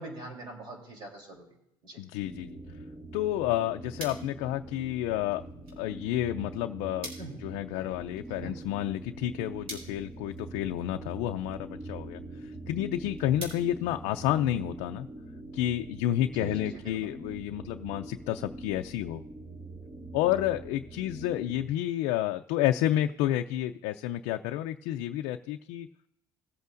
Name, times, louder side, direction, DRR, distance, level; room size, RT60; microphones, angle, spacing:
voice 1, 0.0-1.4 1.8-2.0 7.2-7.4 8.4-8.5 16.4-17.1, right 2 dB, 45° right, 1 dB, 3.4 m, -43 dB
voice 2, 2.0-2.6 3.1-5.4 5.8-7.1 7.4-15.1 15.5-19.2 20.1-25.9, left 13 dB, 85° left, 5 dB, 0.5 m, -30 dB
sound 1, 2.2-21.7, right 2 dB, 30° right, 2.1 m, -44 dB
sound 2, 3.4-14.7, right 1 dB, 60° right, 4.4 m, -50 dB
18.5 x 8.2 x 2.6 m, 0.83 s
cardioid pair, 125°, 11 cm